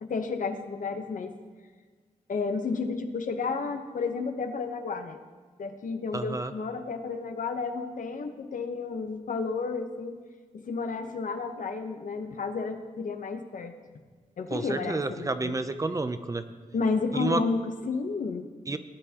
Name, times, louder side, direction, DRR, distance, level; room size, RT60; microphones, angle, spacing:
voice 1, 0.0-1.3 2.3-5.2 5.6-10.2 10.5-13.8 14.4-15.6 16.7-18.5, left 4 dB, 70° left, 7 dB, 0.9 m, -32 dB
voice 2, 6.1-6.5 14.5-16.4 17.1-17.4 18.7-18.8, right 2 dB, 25° right, 10 dB, 0.5 m, -30 dB
18.0 x 10.0 x 2.9 m, 1.5 s
wide cardioid pair, 150°, 14 cm